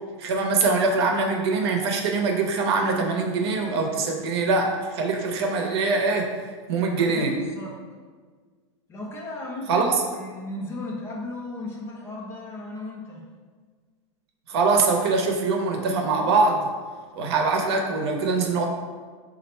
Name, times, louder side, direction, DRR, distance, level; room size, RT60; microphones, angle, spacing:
voice 1, 0.2-6.3 6.7-7.3 9.7-9.9 14.5-16.7 17.2-18.6, right 3 dB, 55° right, 2 dB, 0.7 m, -23 dB
voice 2, 7.0-7.8 8.9-9.9 10.1-13.3, left 2 dB, 15° left, -2 dB, 0.4 m, -35 dB
4.3 x 2.5 x 4.2 m, 1.5 s
supercardioid pair, 165°, 16 cm